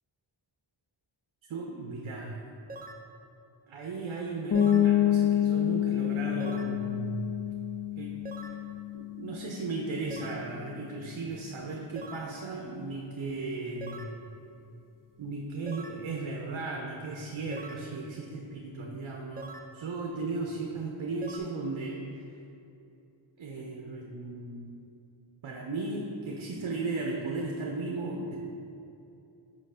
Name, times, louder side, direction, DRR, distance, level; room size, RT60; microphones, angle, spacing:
voice 1, 1.5-2.4 3.7-7.3 8.0-8.2 8.9-14.1 15.2-22.0 23.4-24.8 25.4-28.4, right 3 dB, 70° right, 0 dB, 0.7 m, -36 dB
sound 1, 2.7-3.1 4.5-4.9 6.4-6.8 8.2-8.6 10.1-10.5 12.0-12.3 13.8-14.2 15.7-16.0 17.5-17.9 19.4-19.7 21.2-21.4, right 2 dB, 20° right, 0.3 m, -43 dB
sound 2, 4.5-10.1, left 10 dB, 45° left, 0.5 m, -28 dB
5.5 x 3.1 x 5.5 m, 2.7 s
wide cardioid pair, 65°, 48 cm